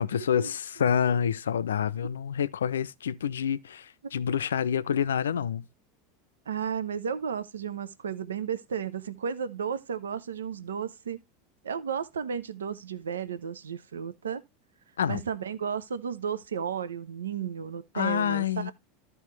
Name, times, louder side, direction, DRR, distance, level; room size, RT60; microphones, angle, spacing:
voice 1, 0.0-5.6 15.0-15.2 17.9-18.7, left 8 dB, 75° left, 0.5 m, -27 dB
voice 2, 6.5-11.2 11.6-14.4 15.1-18.7, right 7 dB, 80° right, 0.7 m, -33 dB
13.5 x 4.6 x 3.2 m
figure-of-eight pair, 85°, 0 cm